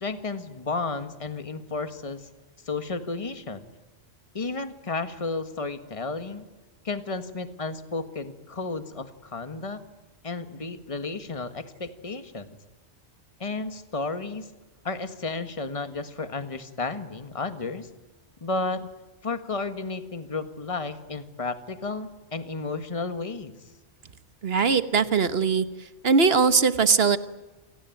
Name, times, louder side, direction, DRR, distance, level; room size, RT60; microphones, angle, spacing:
voice 1, 0.0-2.3 2.6-3.7 4.3-6.4 6.8-9.8 10.2-12.6 13.4-14.5 14.8-17.9 18.4-18.9 19.2-23.5, left 3 dB, 30° left, 10 dB, 1.6 m, -32 dB
voice 2, 24.4-25.7 26.0-27.2, right 5 dB, 60° right, 12 dB, 1.5 m, -20 dB
28.5 x 18.0 x 9.2 m, 1.2 s
omnidirectional pair, 1.2 m